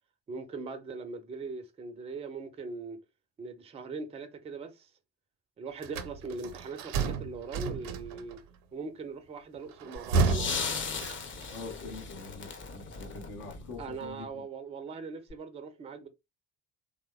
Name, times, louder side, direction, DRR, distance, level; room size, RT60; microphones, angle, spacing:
voice 1, 0.3-3.0 3.4-4.9 5.6-8.4 8.7-10.5 13.8-16.1, right 4 dB, 15° right, 0.4 m, -40 dB
sound 1, 5.8-8.4 9.7-11.5, right 4 dB, 60° right, 0.6 m, -31 dB
sound 2, 10.0-14.1 15.3-15.4, left 5 dB, 25° left, 0.6 m, -37 dB
voice 2, 11.5-14.4, left 3 dB, 65° left, 0.8 m, -44 dB
2.9 x 2.1 x 2.2 m
figure-of-eight pair, 50°, 49 cm